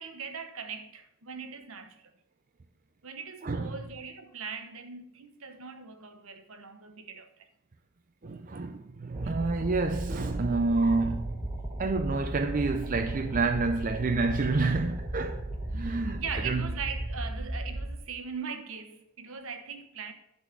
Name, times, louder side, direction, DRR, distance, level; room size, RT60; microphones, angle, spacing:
voice 1, 0.0-2.1 3.0-7.5 8.3-8.4 9.2-9.4 16.1-20.1, right 6 dB, 65° right, 1.1 m, -40 dB
voice 2, 8.2-11.4 11.8-16.6, right 3 dB, 40° right, 0.5 m, -29 dB
sound 1, 9.1-18.0, right 1 dB, 20° right, 1.3 m, -35 dB
11.5 x 4.2 x 7.4 m
head